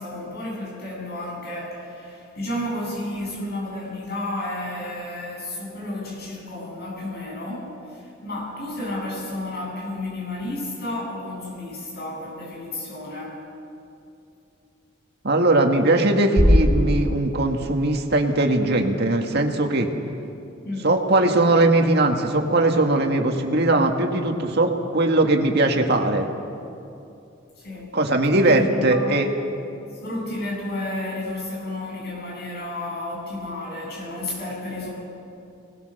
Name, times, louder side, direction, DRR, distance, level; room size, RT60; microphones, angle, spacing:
voice 1, 0.0-13.4 20.6-21.0 27.6-27.9 28.4-29.3 29.9-34.9, left 1 dB, 55° left, -3 dB, 7.9 m, -32 dB
voice 2, 15.2-19.9 20.8-26.3 27.9-29.3, right 2 dB, 55° right, 3 dB, 1.9 m, -20 dB
sound 1, 16.4-18.4, equal, 25° left, 4.4 m, -21 dB
25.5 x 20.0 x 6.6 m, 2.7 s
head